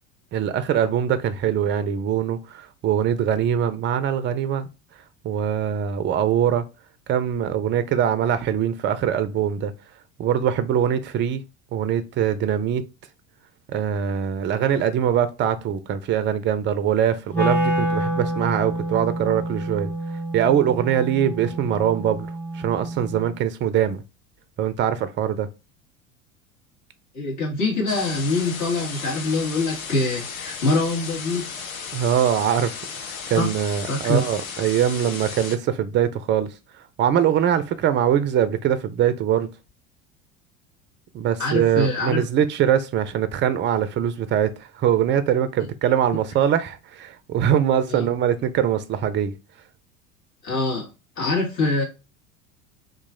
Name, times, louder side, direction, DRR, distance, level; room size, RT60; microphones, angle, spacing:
voice 1, 0.3-4.7 5.2-6.6 7.1-9.7 10.2-11.4 11.7-12.8 13.7-19.9 20.3-22.3 22.5-24.0 24.6-25.5 31.9-36.5 37.0-39.5 41.1-49.3, right 9 dB, 30° right, 0.5 m, -22 dB
Wind instrument woodwind instrument, 17.3-23.4, right 1 dB, 5° left, 1.2 m, -28 dB
voice 2, 27.1-31.5 33.4-33.5 33.9-34.2 41.4-42.2 47.9-48.1 50.4-50.9 51.2-51.8, left 2 dB, 45° left, 1.7 m, -24 dB
sound 1, 27.9-35.6, left 6 dB, 85° left, 0.6 m, -35 dB
3.0 x 2.5 x 3.6 m
hypercardioid pair, 75°, 40 cm